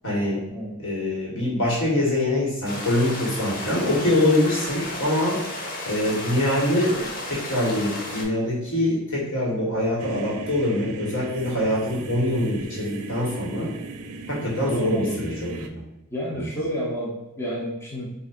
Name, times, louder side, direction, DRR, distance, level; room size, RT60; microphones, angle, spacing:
voice 1, 0.0-0.5 0.8-5.4 5.8-13.7 14.3-15.8 16.3-16.5, left 1 dB, 65° left, -4 dB, 1.5 m, -24 dB
sound 1, 2.6-8.2, left 1 dB, 40° left, 0.8 m, -33 dB
sound 2, 10.0-15.7, right 3 dB, 90° right, 0.4 m, -37 dB
voice 2, 14.6-15.3 16.1-18.1, equal, 10° left, -5 dB, 0.7 m, -30 dB
5.5 x 2.5 x 2.5 m, 0.95 s
head